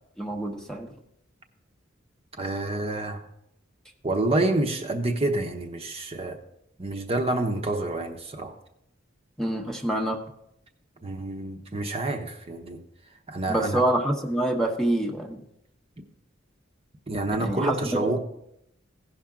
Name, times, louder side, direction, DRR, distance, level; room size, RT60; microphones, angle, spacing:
voice 1, 0.2-0.9 9.4-10.2 13.5-15.4 17.4-17.7, right 1 dB, 5° left, 2 dB, 0.9 m, -26 dB
voice 2, 2.4-3.2 4.0-6.4 6.8-8.5 11.0-12.8 13.3-13.8 17.1-18.2, right 2 dB, 30° right, 4 dB, 0.9 m, -28 dB
16.5 x 5.8 x 3.7 m, 0.78 s
head